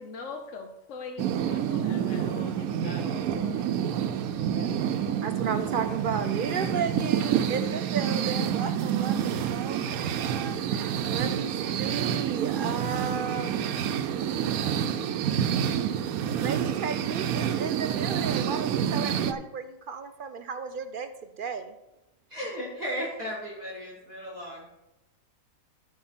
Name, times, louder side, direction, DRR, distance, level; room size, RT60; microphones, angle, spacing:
voice 1, 0.0-3.7 4.5-5.4, left 5 dB, 65° left, 5 dB, 1.1 m, -42 dB
sound 1, 1.2-19.3, right 9 dB, 90° right, 1.1 m, -28 dB
voice 2, 5.2-13.7 16.4-21.7, right 6 dB, 65° right, 9 dB, 0.5 m, -34 dB
voice 3, 22.3-24.7, equal, 30° right, -5 dB, 2.4 m, -35 dB
13.5 x 4.8 x 4.4 m, 0.93 s
omnidirectional pair, 1.5 m